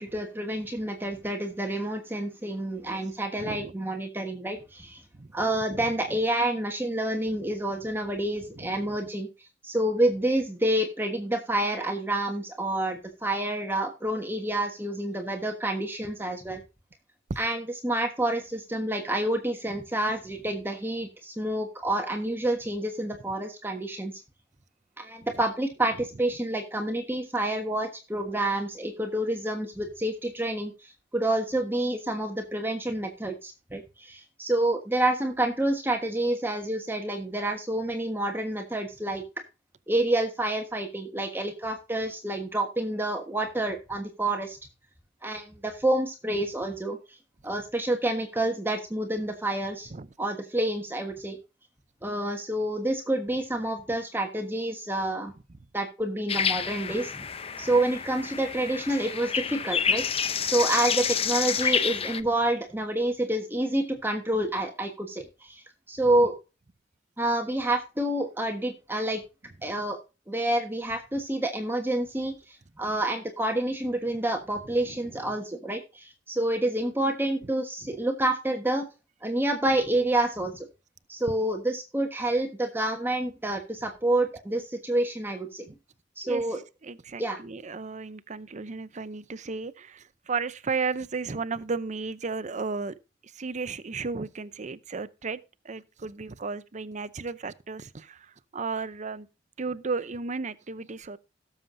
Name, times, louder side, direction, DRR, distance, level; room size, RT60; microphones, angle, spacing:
voice 1, 0.0-5.0 5.3-9.3 9.6-16.6 17.4-24.1 25.0-39.2 39.9-44.6 45.2-47.2 47.4-49.9 50.2-51.4 52.0-55.3 55.7-57.2 57.6-66.4 67.2-69.2 69.6-70.0 70.3-78.9 79.2-80.7 81.1-85.7 86.2-86.6 87.2-87.4, right 1 dB, 10° right, 1.4 m, -28 dB
voice 2, 3.4-3.7 5.1-5.3 5.7-5.9 8.6-9.0 49.9-50.1 86.2-86.4 86.8-92.9 93.3-95.4 95.6-98.2 98.5-99.3 99.6-101.2, right 4 dB, 40° right, 0.6 m, -34 dB
sound 1, 56.3-62.2, left 7 dB, 35° left, 0.7 m, -29 dB
18.0 x 7.3 x 2.7 m
head